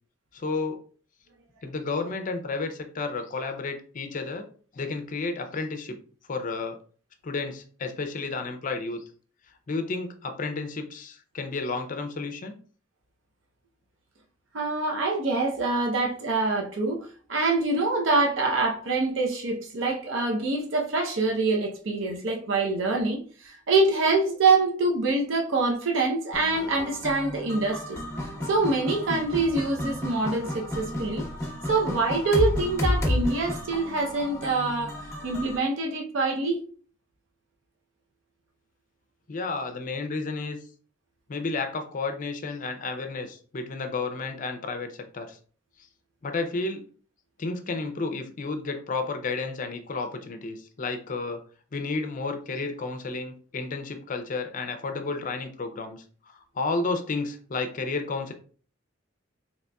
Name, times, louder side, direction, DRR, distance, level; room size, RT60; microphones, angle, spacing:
voice 1, 0.3-0.8 1.6-4.5 4.7-6.0 6.3-6.8 7.2-9.0 9.7-12.6 39.3-40.6 41.3-45.4 46.2-46.8 47.4-51.4 51.7-58.3, left 3 dB, 45° left, 6 dB, 0.5 m, -32 dB
voice 2, 14.5-28.0 28.5-31.2 31.7-34.9 35.2-36.6, right 3 dB, 75° right, 0 dB, 0.7 m, -25 dB
sound 1, 26.3-35.6, left 1 dB, 15° left, 0.9 m, -31 dB
3.9 x 2.9 x 2.2 m, 0.42 s
head